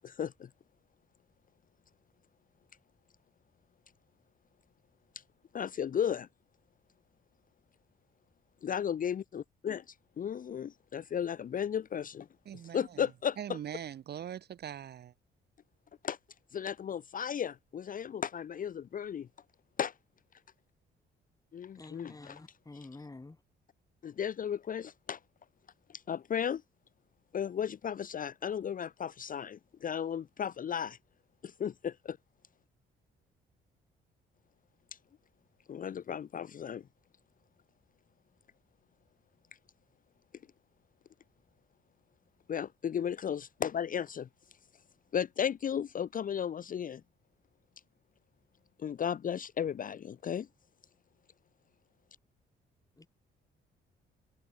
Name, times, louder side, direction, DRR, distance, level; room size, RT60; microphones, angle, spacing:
voice 1, 0.0-0.5 5.5-6.3 8.6-12.3 12.7-13.4 16.0-16.2 16.5-19.3 19.8-19.9 21.5-22.4 24.0-25.2 25.9-26.6 27.3-31.0 31.4-32.2 34.9-35.0 35.7-36.8 42.5-44.3 45.1-47.0 48.8-50.5, left 8 dB, 45° left, 0.7 m, -35 dB
voice 2, 12.5-13.0 13.4-15.1, right 10 dB, 55° right, 0.8 m, -42 dB
voice 3, 21.8-23.4 53.0-53.1, left 2 dB, 15° left, 2.8 m, -49 dB
cardioid pair, 90°, 20 cm